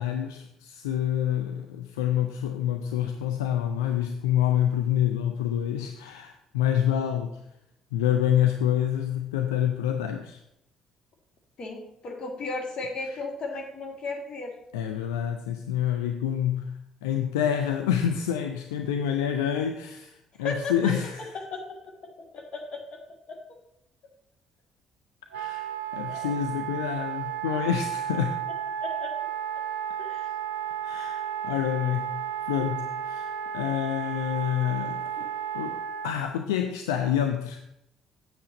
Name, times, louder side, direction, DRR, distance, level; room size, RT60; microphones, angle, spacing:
voice 1, 0.0-7.3 7.9-10.4 13.0-13.2 14.7-21.3 25.3-28.4 30.8-32.1 32.5-35.3 35.5-37.6, left 10 dB, 75° left, 5 dB, 0.5 m, -27 dB
voice 2, 11.6-14.6 20.4-20.9 21.3-23.0 23.3-23.4 26.1-26.3 28.8-29.1 30.0-30.3 35.2-35.3, left 3 dB, 45° left, 2 dB, 2.1 m, -35 dB
Wind instrument woodwind instrument, 25.3-36.1, right 9 dB, 75° right, 0.4 m, -33 dB
7.9 x 7.9 x 4.0 m, 0.82 s
figure-of-eight pair, 45°, 2 cm